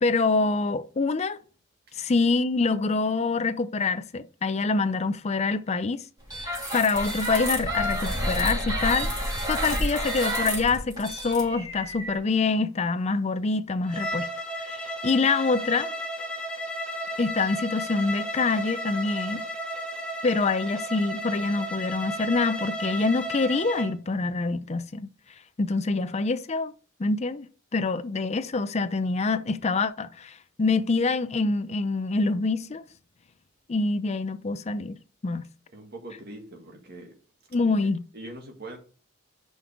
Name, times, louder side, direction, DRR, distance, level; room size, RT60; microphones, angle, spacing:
voice 1, 0.0-1.4 1.9-6.0 6.4-9.1 9.5-14.3 14.6-15.9 17.2-19.4 20.2-25.1 25.6-26.7 27.0-27.5 27.7-32.8 33.7-35.5 37.5-38.0, left 3 dB, 30° left, 0.5 m, -26 dB
sound 1, 6.3-12.2, equal, 20° right, 3.0 m, -29 dB
Bowed string instrument, 13.9-23.9, equal, 5° left, 0.9 m, -34 dB
voice 2, 35.7-37.1 38.1-38.8, right 1 dB, 50° right, 1.8 m, -42 dB
5.8 x 5.3 x 4.8 m
head